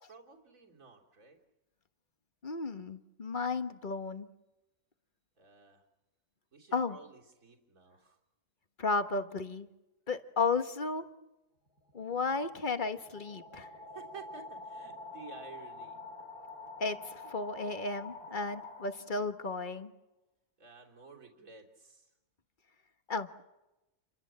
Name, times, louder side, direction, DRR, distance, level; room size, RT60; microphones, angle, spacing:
voice 1, 0.1-1.4 5.4-5.8 6.5-8.2 13.9-16.1 20.6-22.1, right 5 dB, 65° right, 0 dB, 3.6 m, -52 dB
voice 2, 2.4-4.3 6.7-7.0 8.8-9.7 10.1-11.1 11.9-13.7 16.8-19.9 23.1-23.4, left 4 dB, 35° left, 9 dB, 1.4 m, -34 dB
sound 1, 11.7-19.5, left 3 dB, 85° left, 4.0 m, -47 dB
29.0 x 23.5 x 7.6 m, 0.98 s
omnidirectional pair, 1.6 m